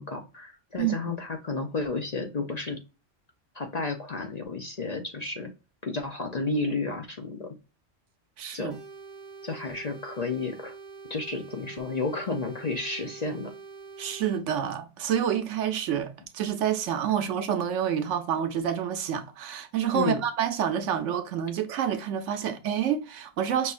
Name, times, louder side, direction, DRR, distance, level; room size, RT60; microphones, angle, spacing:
voice 1, 0.0-2.8 3.5-5.5 5.8-7.5 8.5-8.8 9.4-10.7 11.1-13.5 19.9-20.2, left 3 dB, 45° left, 0.6 m, -32 dB
voice 2, 8.4-8.8 14.0-23.7, right 9 dB, 75° right, 1.0 m, -28 dB
sound 1, 8.7-14.4, right 4 dB, 50° right, 0.7 m, -45 dB
5.5 x 2.7 x 2.4 m
omnidirectional pair, 1.3 m